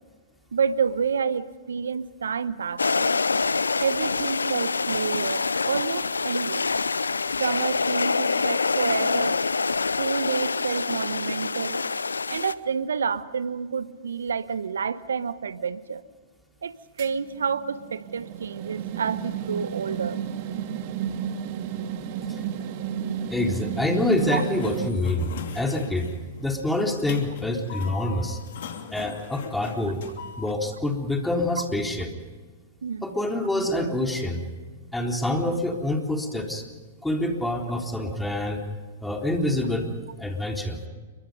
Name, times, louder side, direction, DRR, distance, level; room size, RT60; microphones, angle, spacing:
voice 1, 0.5-3.2 3.8-6.6 7.4-9.4 10.0-11.8 12.3-16.0 16.6-20.2 24.3-24.4 32.8-33.1, right 6 dB, 80° right, 15 dB, 1.1 m, -29 dB
sound 1, 2.8-12.5, left 4 dB, 90° left, 0.7 m, -26 dB
sound 2, 17.0-24.9, right 8 dB, 50° right, 2.1 m, -32 dB
voice 2, 23.3-26.1 26.4-28.4 28.9-30.0 30.4-32.1 33.0-34.4 34.9-36.6 37.0-38.6 39.0-39.9 40.2-40.8, left 1 dB, 5° left, 2 dB, 3.9 m, -26 dB
Sliding door, 24.0-30.5, left 7 dB, 60° left, 2.9 m, -40 dB
28.5 x 24.0 x 5.3 m, 1.4 s
hypercardioid pair, 110°, 0 cm